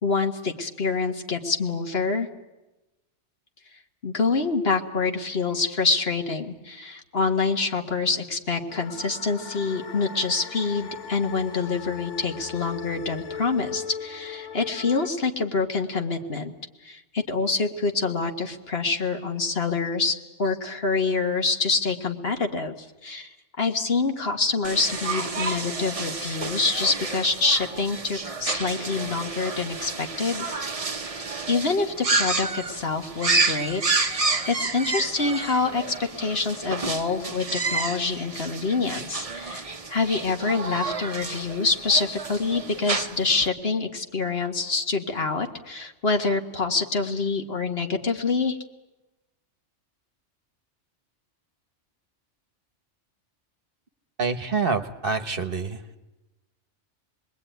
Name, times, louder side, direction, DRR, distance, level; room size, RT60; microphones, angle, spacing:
voice 1, 0.0-2.3 4.0-16.5 16.8-23.3 23.6-30.9 31.5-34.2 34.4-48.6, left 4 dB, 55° left, 5 dB, 1.8 m, -26 dB
sound 1, 8.7-15.1, left 7 dB, 75° left, 1.9 m, -39 dB
sound 2, 24.6-43.5, right 3 dB, 30° right, 1.0 m, -30 dB
voice 2, 54.2-56.0, right 4 dB, 50° right, 9 dB, 1.4 m, -27 dB
27.0 x 21.0 x 9.3 m, 1.0 s
omnidirectional pair, 1.2 m